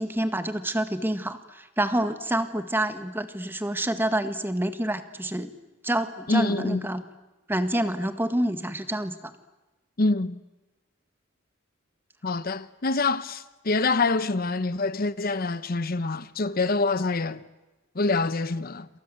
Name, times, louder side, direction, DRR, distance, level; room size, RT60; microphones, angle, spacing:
voice 1, 0.0-5.5 5.8-7.0 7.5-9.3, right 1 dB, 10° right, 1.8 m, -27 dB
voice 2, 6.3-6.9 10.0-10.4 12.2-17.4 17.9-18.9, left 3 dB, 50° left, 0.9 m, -26 dB
28.5 x 27.0 x 7.8 m
head